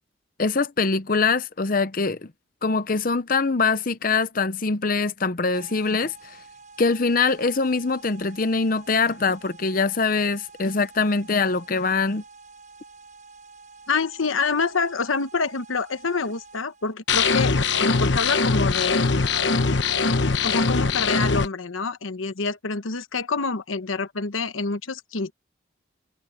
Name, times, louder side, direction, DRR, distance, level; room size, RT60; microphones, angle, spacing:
voice 1, 0.4-2.2 2.6-6.4 6.8-12.2, left 4 dB, 45° left, 0.7 m, -23 dB
sound 1, 5.5-16.9, right 4 dB, 40° right, 8.0 m, -48 dB
voice 2, 13.9-19.1 20.3-25.3, left 4 dB, 85° left, 1.1 m, -27 dB
sound 2, 17.1-21.5, left 4 dB, 60° left, 1.1 m, -22 dB
head